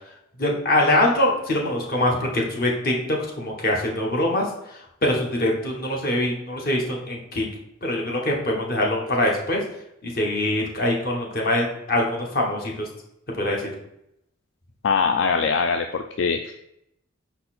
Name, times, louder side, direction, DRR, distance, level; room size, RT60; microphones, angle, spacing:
voice 1, 0.4-4.4 5.0-7.5 7.8-9.6 10.0-12.9 13.4-13.7, left 1 dB, 45° left, -1 dB, 1.2 m, -23 dB
voice 2, 14.8-16.5, left 5 dB, 60° left, 5 dB, 0.3 m, -22 dB
5.6 x 4.2 x 4.2 m, 0.79 s
head